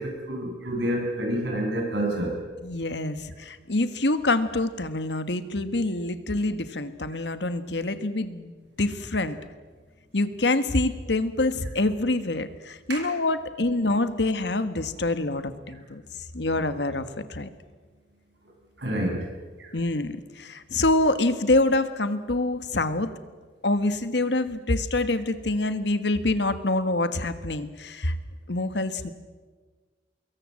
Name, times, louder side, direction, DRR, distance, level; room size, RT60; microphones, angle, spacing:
voice 1, 0.0-2.3 7.1-7.2 12.9-13.0 18.8-19.3 19.6-19.7, right 1 dB, 70° right, 1 dB, 7.2 m, -28 dB
voice 2, 2.6-8.5 8.8-9.4 10.1-16.0 16.3-17.5 19.7-23.1 23.6-28.1 28.5-29.1, left 2 dB, 70° left, 11 dB, 1.6 m, -26 dB
25.5 x 22.0 x 7.7 m, 1.4 s
head